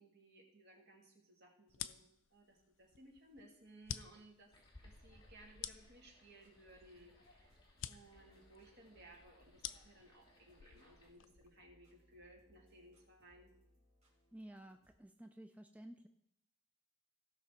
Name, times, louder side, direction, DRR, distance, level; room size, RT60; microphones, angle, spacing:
voice 1, 0.0-2.0 2.3-4.5 4.8-7.6 7.9-13.5, right 1 dB, 60° right, 0 dB, 2.3 m, -61 dB
sound 1, 1.7-11.6, left 10 dB, 85° left, 0.5 m, -51 dB
sound 2, 4.5-11.1, left 1 dB, 25° left, 2.8 m, -65 dB
sound 3, 6.3-15.0, left 1 dB, 35° right, 2.4 m, -72 dB
voice 2, 14.3-16.1, right 1 dB, 10° right, 6 dB, 0.4 m, -54 dB
15.5 x 5.9 x 4.5 m, 0.77 s
head